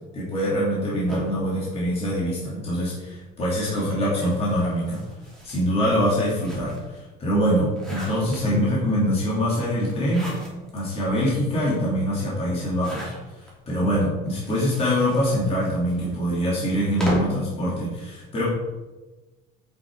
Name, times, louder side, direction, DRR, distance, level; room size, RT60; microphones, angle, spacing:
voice 1, 0.1-5.0 5.4-10.3 10.7-13.1 13.7-18.5, equal, 30° left, -6 dB, 2.9 m, -24 dB
sound 1, 1.1-2.7 3.5-7.0 7.4-8.8 9.8-10.8 11.3-11.4 11.6-11.7 12.6-13.5 14.3-17.5, equal, 5° left, 2.8 m, -37 dB
8.8 x 6.7 x 4.8 m, 1.2 s
cardioid pair, 160°, 21 cm